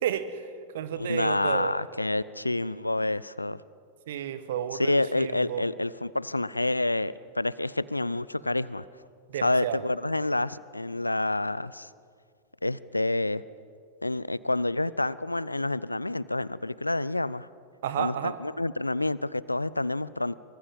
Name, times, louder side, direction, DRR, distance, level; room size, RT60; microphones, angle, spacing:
voice 1, 0.0-0.5 0.7-1.7 4.1-5.6 9.3-9.8 17.8-18.4, right 10 dB, 60° right, 12 dB, 1.6 m, -31 dB
voice 2, 1.0-3.6 4.7-8.8 9.4-11.9 12.6-13.4 14.0-17.5 17.9-20.3, left 2 dB, 85° left, 20 dB, 0.6 m, -28 dB
24.5 x 23.0 x 7.2 m, 2.2 s
figure-of-eight pair, 90°, 0 cm